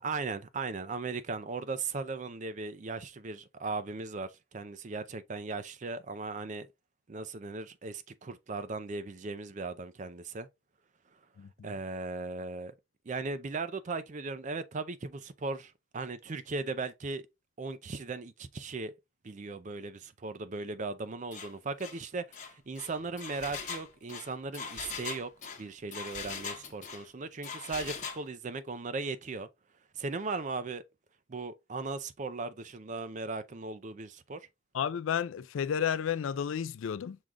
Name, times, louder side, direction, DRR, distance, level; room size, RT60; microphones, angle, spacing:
voice 1, 0.0-6.7 7.1-10.5 11.6-12.7 13.1-17.3 17.6-18.9 19.2-25.3 25.6-29.5 29.9-30.8 31.3-34.4, right 3 dB, 40° right, 0.4 m, -37 dB
voice 2, 11.4-11.7 34.7-37.2, left 8 dB, 75° left, 0.3 m, -32 dB
Engine, 21.3-21.5 21.8-22.0 22.3-27.1 27.4-28.2, left 6 dB, 40° left, 0.8 m, -41 dB
6.3 x 2.3 x 3.6 m
head